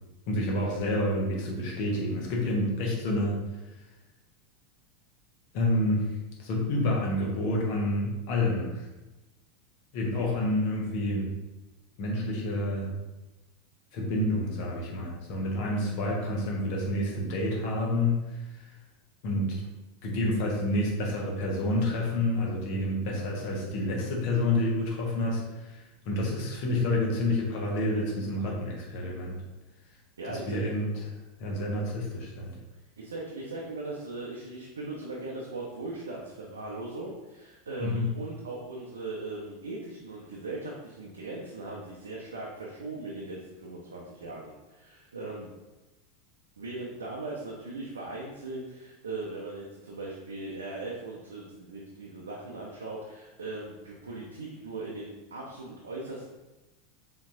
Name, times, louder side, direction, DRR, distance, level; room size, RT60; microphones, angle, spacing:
voice 1, 0.3-3.4 5.5-6.1 6.4-8.8 9.9-11.3 12.0-12.9 13.9-18.2 18.5-18.6 19.2-19.6 20.0-29.4 30.3-30.9 31.4-32.5 37.8-38.1, left 1 dB, 50° left, -2 dB, 1.1 m, -28 dB
voice 2, 30.2-30.6 33.0-45.5 46.6-56.3, right 2 dB, 75° right, -3 dB, 0.6 m, -39 dB
4.2 x 3.8 x 2.7 m, 1.1 s
figure-of-eight pair, 85°, 0 cm